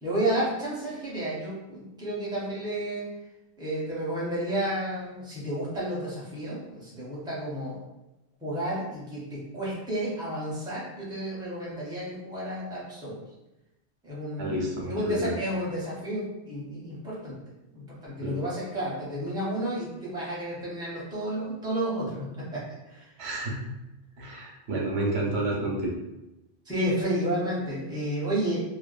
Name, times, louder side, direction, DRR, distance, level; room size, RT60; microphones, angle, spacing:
voice 1, 0.0-3.1 3.6-7.8 8.4-13.2 14.0-17.4 17.7-23.1 26.7-28.6, right 1 dB, 5° right, -7 dB, 0.6 m, -31 dB
voice 2, 14.4-15.3 18.2-18.4 23.2-23.7 24.2-26.0, right 1 dB, 80° right, -1 dB, 0.9 m, -30 dB
2.6 x 2.1 x 2.4 m, 0.96 s
omnidirectional pair, 1.1 m